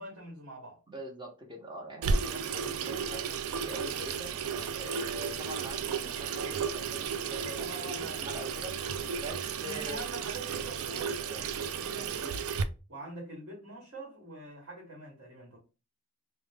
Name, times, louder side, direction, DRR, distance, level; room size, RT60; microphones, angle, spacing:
voice 1, 0.0-0.8 7.6-8.6 8.9-9.0 9.6-12.4 12.9-15.6, right 2 dB, 55° right, 1.3 m, -45 dB
voice 2, 0.9-3.2 3.6-4.3 4.7-8.8 9.2-10.1, right 1 dB, 20° right, 0.8 m, -43 dB
Water tap faucet / Sink (filling or washing), 2.0-12.6, right 6 dB, 80° right, 0.4 m, -34 dB
3.4 x 2.1 x 3.3 m
head